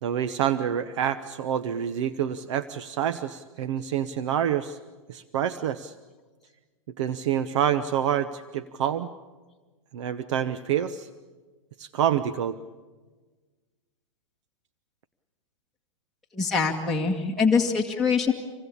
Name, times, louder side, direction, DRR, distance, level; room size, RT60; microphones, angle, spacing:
voice 1, 0.0-4.8 5.1-5.9 7.0-9.1 9.9-11.1 11.8-12.6, right 9 dB, 60° right, 12 dB, 1.1 m, -27 dB
voice 2, 16.3-18.3, left 5 dB, ahead, -4 dB, 1.9 m, -23 dB
26.5 x 20.0 x 8.6 m, 1.3 s
hypercardioid pair, 120°, 17 cm